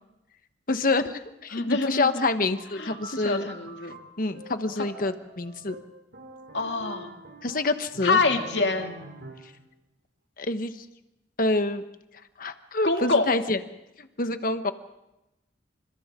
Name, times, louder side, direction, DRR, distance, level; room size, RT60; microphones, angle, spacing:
voice 1, 0.7-3.5 4.2-5.8 7.4-8.2 10.4-10.8 11.4-11.8 12.4-13.6 14.0-14.7, left 2 dB, 50° left, 9 dB, 1.2 m, -27 dB
voice 2, 1.5-2.3 2.8-2.9 3.2-4.0 6.5-7.1 8.0-8.9 12.8-13.3, left 3 dB, 75° left, 3 dB, 2.5 m, -25 dB
sound 1, 2.6-9.6, right 2 dB, 75° right, 3.0 m, -46 dB
29.5 x 26.5 x 3.7 m, 0.93 s
head